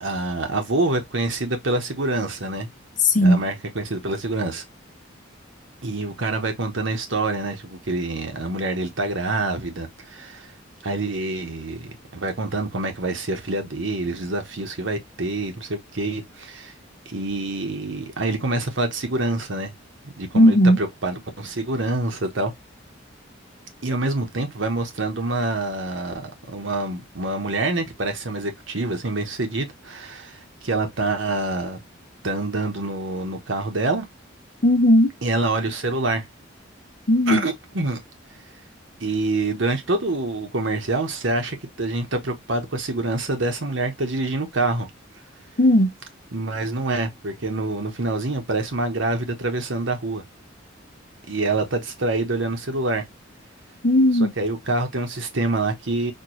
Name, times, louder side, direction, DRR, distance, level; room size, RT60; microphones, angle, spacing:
voice 1, 0.0-2.7 3.2-4.6 5.8-10.5 10.8-16.7 17.1-19.7 20.2-22.5 23.8-31.8 32.2-34.0 35.2-36.2 37.3-38.0 39.0-44.9 46.3-50.2 51.3-53.0 54.4-56.1, right 2 dB, 65° right, 1.1 m, -26 dB
voice 2, 3.0-3.4 20.3-20.8 34.6-35.1 37.1-37.4 45.6-45.9 53.8-54.3, left 1 dB, 40° left, 0.7 m, -16 dB
4.4 x 2.5 x 3.1 m
head